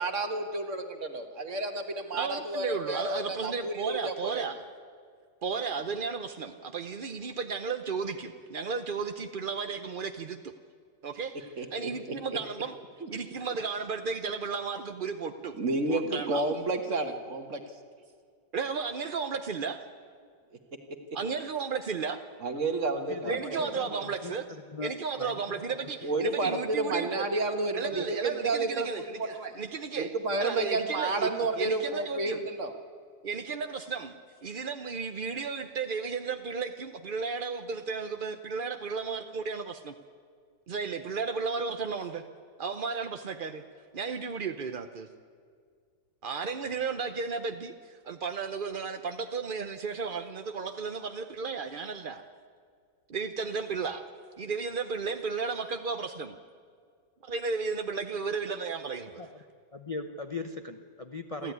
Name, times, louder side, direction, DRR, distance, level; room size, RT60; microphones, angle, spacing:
voice 1, 0.0-4.4 11.6-11.9 13.0-13.1 15.6-17.6 22.4-24.0 26.0-29.6 29.9-32.7, right 2 dB, 40° right, 6 dB, 1.8 m, -31 dB
voice 2, 2.1-4.6 5.4-10.5 11.0-12.8 13.1-15.6 15.9-16.5 18.5-19.9 21.1-22.2 23.3-24.4 24.8-27.3 27.7-32.4 33.2-40.0 40.7-42.2 42.6-43.6 43.9-45.1 46.2-52.2 53.1-54.1 54.4-56.4 57.2-59.2 61.4-61.5, right 5 dB, 60° right, 8 dB, 0.5 m, -34 dB
voice 3, 23.1-24.4 24.7-25.4 25.8-26.6 28.0-28.1 59.2-59.4 59.7-61.5, left 3 dB, 45° left, 6 dB, 0.4 m, -40 dB
28.0 x 12.5 x 9.5 m, 2.1 s
omnidirectional pair, 2.0 m